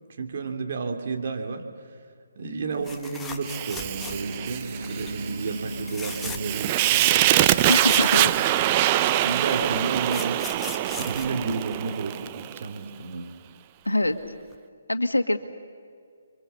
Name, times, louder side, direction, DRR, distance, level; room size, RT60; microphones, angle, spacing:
voice 1, 0.2-1.6 2.4-7.5 8.1-8.3 9.2-10.4 10.8-13.3, right 4 dB, 50° right, 4 dB, 2.8 m, -31 dB
sound 1, 2.8-4.5 4.8-5.2 5.8-6.6 7.0-7.1 7.3-8.8 9.6-12.1 14.0-14.2 14.5-14.6, left 4 dB, 10° left, 1.4 m, -39 dB
Fire, 3.4-12.7, right 14 dB, 30° right, 0.6 m, -24 dB
sound 2, 3.8-11.4, right 1 dB, 85° right, 1.9 m, -38 dB
voice 2, 7.7-8.3 13.9-14.2 14.9-15.4, left 1 dB, 85° left, 8 dB, 1.7 m, -23 dB
29.5 x 24.0 x 6.9 m, 2.2 s
figure-of-eight pair, 140°, 0 cm